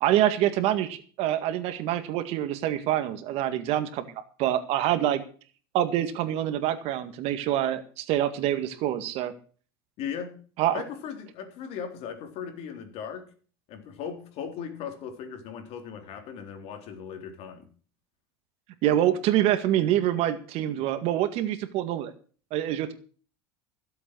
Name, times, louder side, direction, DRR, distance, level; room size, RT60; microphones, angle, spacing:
voice 1, 0.0-4.0 4.4-5.2 5.7-9.3 10.6-10.8 18.8-22.1 22.5-22.9, right 12 dB, 55° right, 10 dB, 1.9 m, -26 dB
voice 2, 10.0-10.4 10.7-13.2 13.7-17.7, left 7 dB, 55° left, 6 dB, 3.8 m, -38 dB
15.5 x 8.0 x 6.3 m, 0.41 s
supercardioid pair, 110°, 12 cm